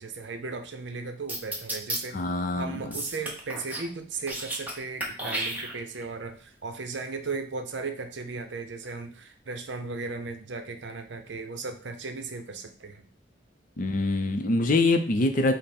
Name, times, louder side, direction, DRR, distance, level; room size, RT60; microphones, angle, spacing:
voice 1, 0.0-13.0, right 4 dB, 65° right, 6 dB, 0.6 m, -36 dB
sound 1, 1.3-2.0 2.9-3.9 4.2-4.7 5.0-6.0, right 1 dB, 10° right, 0.8 m, -32 dB
voice 2, 2.1-2.8 13.8-15.5, left 2 dB, 45° left, 7 dB, 0.5 m, -24 dB
5.3 x 2.1 x 4.3 m, 0.42 s
head